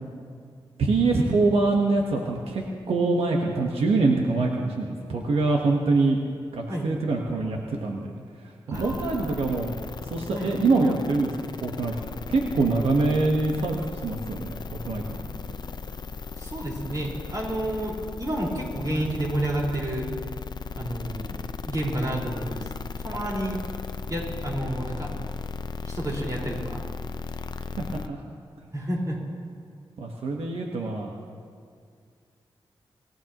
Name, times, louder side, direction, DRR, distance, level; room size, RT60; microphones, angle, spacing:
voice 1, 0.8-6.2 6.5-8.1 8.7-11.9 12.3-14.6 14.8-15.0 27.8-28.2 30.0-31.1, right 3 dB, 85° right, 0 dB, 1.3 m, -24 dB
sound 1, 8.7-28.1, left 5 dB, 50° left, 0.6 m, -36 dB
voice 2, 8.7-9.5 10.3-10.5 16.4-20.1 20.8-21.4 21.6-22.7 23.0-23.6 24.1-25.1 25.8-26.8 28.7-29.2, right 1 dB, 35° right, -3 dB, 4.8 m, -30 dB
25.0 x 16.0 x 3.0 m, 2.2 s
cardioid pair, 80°, 10 cm